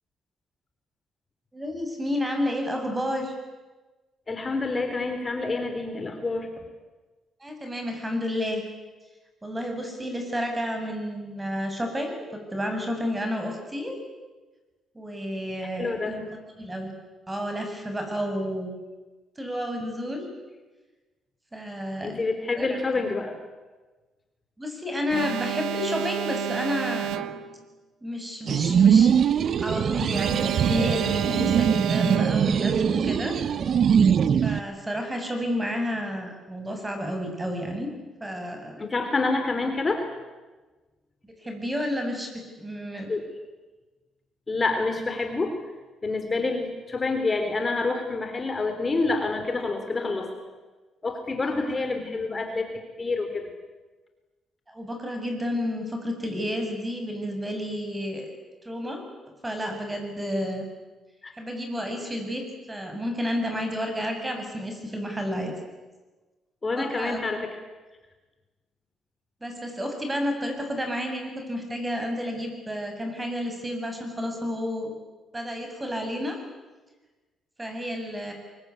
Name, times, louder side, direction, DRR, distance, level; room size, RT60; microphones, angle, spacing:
voice 1, 1.5-3.4 7.4-8.7 9.4-13.9 14.9-16.2 16.6-16.9 17.3-18.7 19.4-20.2 21.5-22.2 22.6-22.8 24.6-27.1 28.0-29.1 29.6-33.4 34.4-37.9 38.2-38.8 41.2-42.3 42.6-43.1 51.4-51.6 54.7-58.3 58.6-60.7 61.4-62.4 62.7-65.5 66.7-67.2 69.4-74.9 75.3-76.4 77.6-78.3, equal, 15° right, 4 dB, 7.7 m, -31 dB
voice 2, 4.3-6.5 15.8-16.2 22.0-23.4 38.8-40.1 43.1-43.2 44.5-45.6 46.0-50.4 51.0-52.7 53.0-53.5 61.2-61.3 66.6-67.5, left 3 dB, 30° left, 5 dB, 3.7 m, -27 dB
Alarm, 25.1-27.7 30.1-32.7, right 9 dB, 85° right, 1.4 m, -31 dB
sound 1, 28.5-34.6, right 7 dB, 55° right, 1.0 m, -21 dB
24.0 x 23.0 x 9.8 m, 1.2 s
cardioid pair, 90°, 0 cm